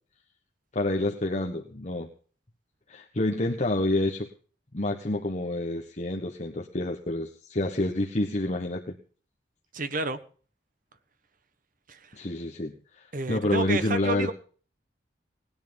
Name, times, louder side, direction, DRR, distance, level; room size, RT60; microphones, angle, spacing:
voice 1, 0.7-2.1 2.9-4.3 4.7-9.0 12.1-14.3, left 2 dB, 40° left, 2 dB, 1.3 m, -28 dB
voice 2, 9.7-10.2 11.9-12.1 13.1-14.3, right 3 dB, 50° right, 10 dB, 1.3 m, -30 dB
19.0 x 10.5 x 5.3 m, 0.42 s
head